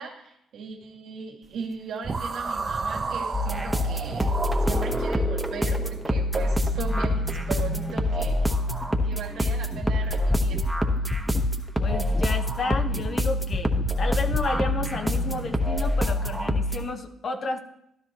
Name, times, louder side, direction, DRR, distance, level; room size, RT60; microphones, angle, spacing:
voice 1, 0.0-4.3 4.6-8.5 9.0-10.7, right 5 dB, 75° right, -1 dB, 2.1 m, -37 dB
sound 1, 2.0-5.2, right 4 dB, 35° right, 0.9 m, -31 dB
sound 2, 3.3-16.8, left 1 dB, 10° right, 1.1 m, -25 dB
sound 3, 9.7-9.9 10.3-10.7 11.1-11.5 11.9-12.3 12.7-13.1 13.5-13.9 14.3-14.8, left 2 dB, 10° left, 0.6 m, -30 dB
voice 2, 11.8-17.6, left 3 dB, 50° left, 5 dB, 1.1 m, -31 dB
13.0 x 12.0 x 3.0 m, 0.77 s
cardioid pair, 90°, 0 cm